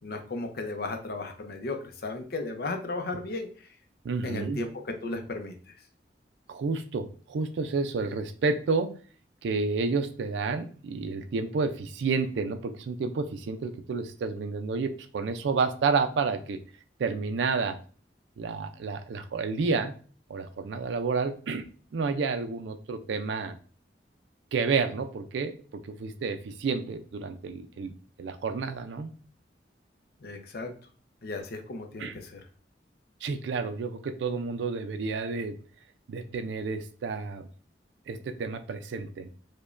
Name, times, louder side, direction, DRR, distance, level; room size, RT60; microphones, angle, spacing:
voice 1, 0.0-3.7 4.2-5.6 30.2-30.7 31.2-32.4, left 2 dB, 60° left, 5 dB, 0.6 m, -35 dB
voice 2, 4.0-4.6 6.5-8.9 9.4-16.6 17.0-17.8 18.4-19.9 20.3-21.7 21.9-23.6 24.5-25.6 25.8-27.9 28.2-29.1 32.0-32.1 33.2-35.6 36.1-37.5 38.1-39.3, right 4 dB, 85° right, 8 dB, 0.4 m, -30 dB
4.9 x 2.2 x 2.4 m, 0.41 s
head